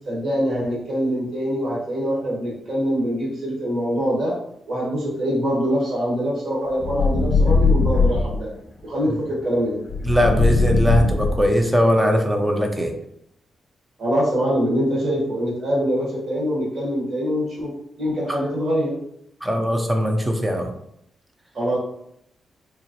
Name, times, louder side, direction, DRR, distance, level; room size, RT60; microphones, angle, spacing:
voice 1, 0.1-4.4 4.7-8.5 8.8-9.8 14.0-17.7 18.0-18.9 21.5-21.8, equal, 50° right, -5 dB, 1.1 m, -24 dB
sound 1, 6.8-8.4 9.9-11.7, left 3 dB, 45° left, 0.7 m, -19 dB
voice 2, 10.0-12.9 19.4-20.7, equal, 10° right, 4 dB, 0.5 m, -20 dB
3.8 x 3.0 x 2.8 m, 0.74 s
wide cardioid pair, 165°, 0 cm